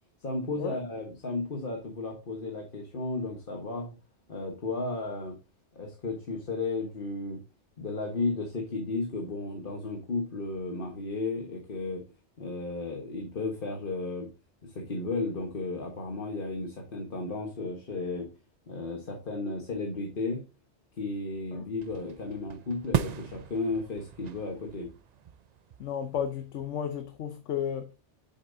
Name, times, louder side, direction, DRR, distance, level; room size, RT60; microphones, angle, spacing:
voice 1, 0.2-3.9 4.3-5.4 5.7-7.4 7.8-12.0 12.4-14.3 14.6-18.3 18.7-20.4 21.0-24.9, left 3 dB, 50° left, 1.4 m, -34 dB
sound 1, 21.8-27.1, right 9 dB, 65° right, 0.4 m, -37 dB
voice 2, 25.8-27.9, left 8 dB, 85° left, 1.1 m, -33 dB
8.3 x 7.2 x 2.7 m
omnidirectional pair, 1.2 m